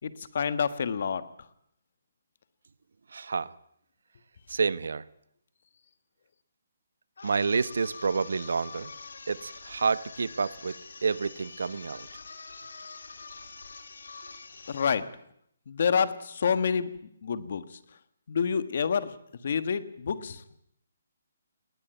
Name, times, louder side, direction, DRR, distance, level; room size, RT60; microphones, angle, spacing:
voice 1, 0.0-1.2 14.7-15.1 15.7-16.9 17.2-17.8 18.3-19.1 19.4-20.4, left 6 dB, 45° left, 13 dB, 1.5 m, -28 dB
voice 2, 3.1-3.5 4.5-5.0 7.2-8.9 9.3-10.8 11.0-12.1, right 5 dB, 70° right, 18 dB, 1.0 m, -29 dB
sound 1, 7.2-15.0, left 4 dB, 85° left, 3.4 m, -45 dB
20.0 x 18.0 x 9.2 m, 0.72 s
hypercardioid pair, 175°, 0 cm